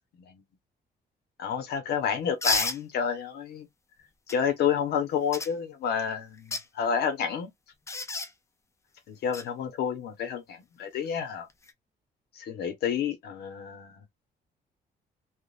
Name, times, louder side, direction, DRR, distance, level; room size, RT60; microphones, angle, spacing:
voice 1, 1.4-3.7 4.3-7.5 9.1-11.5 12.3-14.0, left 7 dB, 75° left, 1.0 m, -30 dB
sound 1, 2.4-2.8 4.3-4.4 5.3-5.5 6.3-6.6 7.9-8.3 9.3-9.4 11.5-11.7, left 3 dB, 15° left, 0.5 m, -29 dB
3.6 x 2.4 x 2.4 m
cardioid pair, 175°, 17 cm